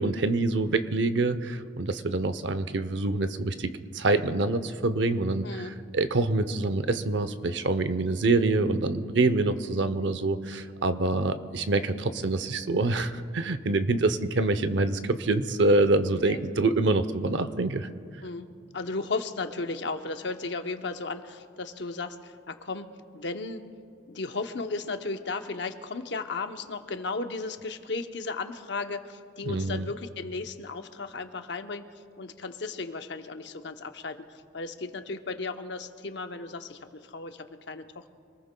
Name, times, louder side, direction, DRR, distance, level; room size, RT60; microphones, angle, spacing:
voice 1, 0.0-17.9 29.5-29.9, right 2 dB, 70° right, 12 dB, 0.7 m, -26 dB
voice 2, 18.7-23.6 24.1-31.9 32.2-38.1, left 3 dB, 65° left, 7 dB, 0.8 m, -35 dB
26.0 x 19.5 x 2.2 m, 2.3 s
head